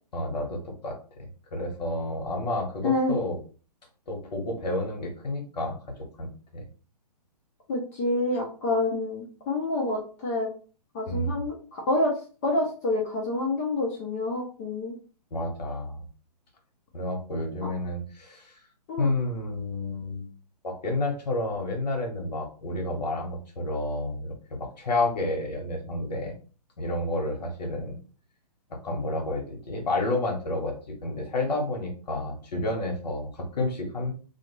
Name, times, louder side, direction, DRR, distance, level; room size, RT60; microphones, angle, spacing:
voice 1, 0.1-3.4 4.1-6.6 11.1-11.4 15.3-16.1 16.9-18.6 19.0-20.3 20.6-26.3 26.8-28.0 28.7-34.1, left 2 dB, 80° left, 1 dB, 1.0 m, -30 dB
voice 2, 2.8-3.2 7.7-10.5 10.9-12.2 12.4-14.9 17.6-17.7 18.9-19.1, left 2 dB, 25° left, -2 dB, 0.5 m, -27 dB
2.4 x 2.3 x 3.0 m, 0.38 s
hypercardioid pair, 155°, 21 cm